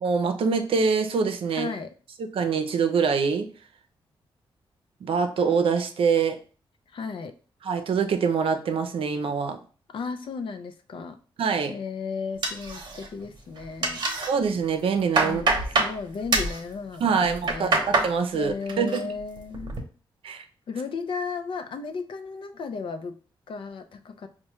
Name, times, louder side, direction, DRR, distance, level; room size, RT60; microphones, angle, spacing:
voice 1, 0.0-1.7 2.2-3.5 5.0-6.4 7.6-9.6 11.4-11.7 14.3-15.4 17.0-19.1 20.2-20.4, right 5 dB, 75° right, 6 dB, 0.5 m, -25 dB
voice 2, 1.5-1.9 6.9-7.3 9.9-11.2 11.7-14.0 15.2-17.9 18.3-19.7 20.7-23.2 23.5-24.3, left 5 dB, 65° left, 7 dB, 0.5 m, -34 dB
sound 1, 12.4-13.3 13.6-14.3 14.7-16.0 16.3-16.6 17.2-18.1 18.5-19.0 19.4-19.8, right 3 dB, 50° right, 0.8 m, -25 dB
4.5 x 2.2 x 3.0 m, 0.38 s
wide cardioid pair, 110°, 9 cm